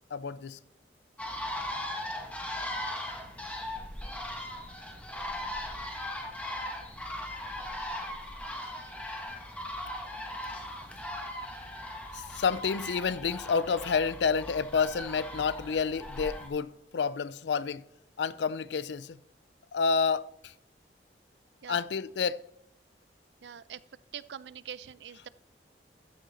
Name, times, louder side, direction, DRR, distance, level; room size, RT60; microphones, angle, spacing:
voice 1, 0.1-0.6 12.1-17.8 18.2-19.2 19.7-20.5 21.7-22.4, left 5 dB, 80° left, 0.4 m, -29 dB
sound 1, 1.2-16.5, left 1 dB, 5° left, 1.3 m, -38 dB
voice 2, 23.4-23.8 24.1-25.3, right 8 dB, 80° right, 0.4 m, -43 dB
13.0 x 6.4 x 4.2 m
head